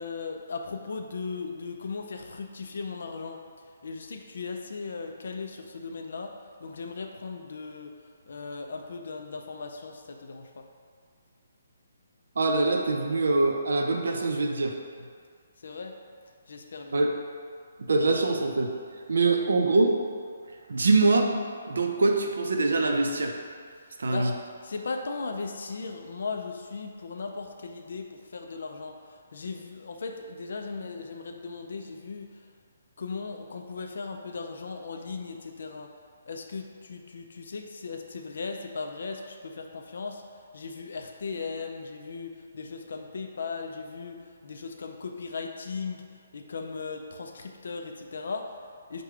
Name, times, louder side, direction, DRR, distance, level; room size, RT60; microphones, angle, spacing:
voice 1, 0.0-3.4 3.8-6.3 6.6-10.7 15.6-16.0 16.5-17.0 24.1-24.3 24.6-32.5 33.0-35.9 36.3-49.0, left 4 dB, 60° left, 3 dB, 0.3 m, -37 dB
voice 2, 12.4-14.7 16.9-17.1 17.8-18.7 19.1-20.0 20.7-21.3 21.7-23.3 24.0-24.3, right 3 dB, 80° right, 3 dB, 0.5 m, -24 dB
4.9 x 2.2 x 4.7 m, 2.1 s
hypercardioid pair, 175°, 0 cm